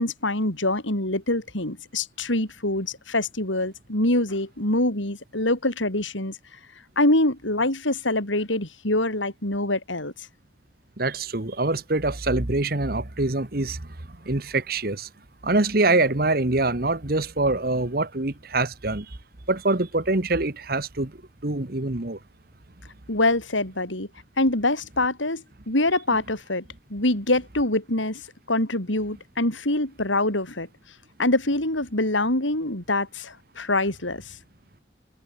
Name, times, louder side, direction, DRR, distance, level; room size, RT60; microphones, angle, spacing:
voice 1, 0.0-6.4 7.0-10.1 23.1-24.1 24.4-26.6 26.9-28.2 28.5-30.7 31.2-34.4, left 2 dB, 85° left, 6.7 m, -24 dB
voice 2, 11.0-13.9 14.2-15.1 15.4-19.2 19.5-21.1 21.4-22.2, right 2 dB, 50° right, 1.5 m, -24 dB
head